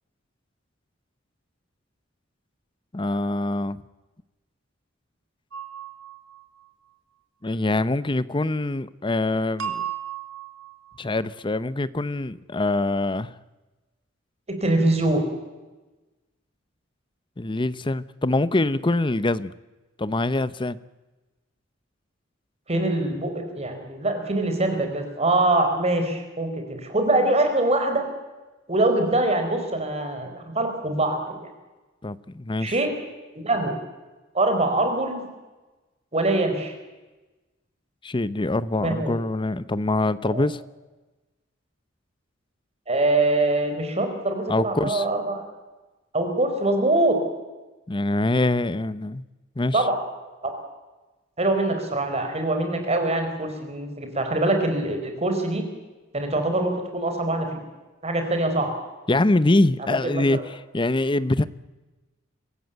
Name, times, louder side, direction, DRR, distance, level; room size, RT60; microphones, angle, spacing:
voice 1, 2.9-3.8 7.4-9.8 11.0-13.3 17.4-19.5 20.0-20.8 32.0-32.8 38.0-40.6 44.5-45.1 47.9-49.2 49.6-49.9 59.1-61.5, left 2 dB, 25° left, 16 dB, 0.7 m, -24 dB
sound 1, 5.5-6.6 9.6-11.0, right 9 dB, 75° right, 2.8 m, -34 dB
voice 2, 14.6-15.2 22.7-28.0 28.7-31.4 32.6-32.9 33.3-33.7 34.3-35.2 36.1-36.7 38.8-39.1 40.2-40.5 42.9-45.4 46.1-47.2 49.7-50.0 50.4-50.5 51.4-55.6 56.1-57.6 58.0-58.7 60.0-60.4, right 2 dB, 35° right, 5 dB, 4.5 m, -23 dB
24.5 x 15.0 x 9.1 m, 1.1 s
head